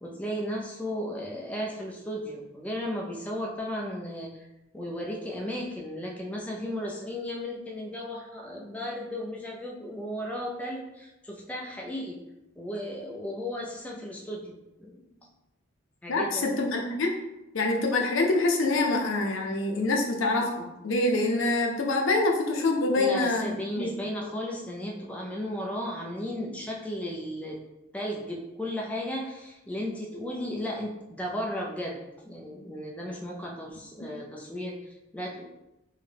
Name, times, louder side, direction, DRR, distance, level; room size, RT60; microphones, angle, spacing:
voice 1, 0.0-4.3 4.7-12.2 12.6-15.3 16.0-16.5 22.9-27.6 27.9-35.4, equal, 5° left, -2 dB, 0.4 m, -35 dB
voice 2, 16.1-17.1 17.5-23.9 34.0-34.1, left 2 dB, 90° left, 1 dB, 0.6 m, -26 dB
3.6 x 2.2 x 3.4 m, 0.93 s
head